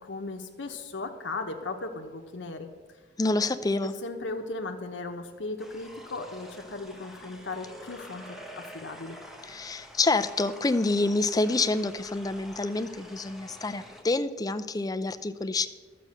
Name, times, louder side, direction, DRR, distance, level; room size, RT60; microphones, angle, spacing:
voice 1, 0.0-2.7 4.0-9.2, left 3 dB, 85° left, 4 dB, 1.0 m, -37 dB
voice 2, 3.2-3.9 9.4-15.7, left 3 dB, 20° left, 10 dB, 0.5 m, -27 dB
sound 1, 5.6-14.0, equal, ahead, 1.1 m, -47 dB
11.5 x 7.8 x 6.4 m, 1.4 s
head